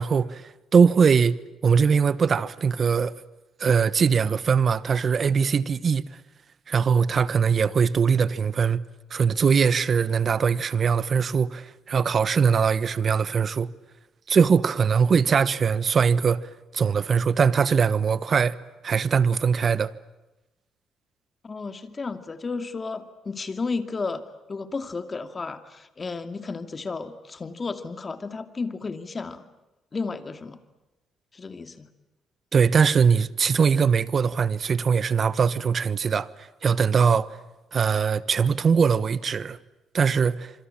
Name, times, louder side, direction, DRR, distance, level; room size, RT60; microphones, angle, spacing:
voice 1, 0.0-1.4 1.6-3.1 3.6-6.1 6.7-8.8 9.1-13.7 14.3-16.5 16.7-18.6 18.8-19.9 32.5-37.3 37.7-39.6 39.9-40.5, right 6 dB, 45° right, 1.2 m, -21 dB
voice 2, 21.4-29.4 29.9-30.6 31.3-31.9, left 4 dB, 30° left, 2.4 m, -33 dB
26.5 x 25.5 x 8.9 m
cardioid pair, 90°, 0 cm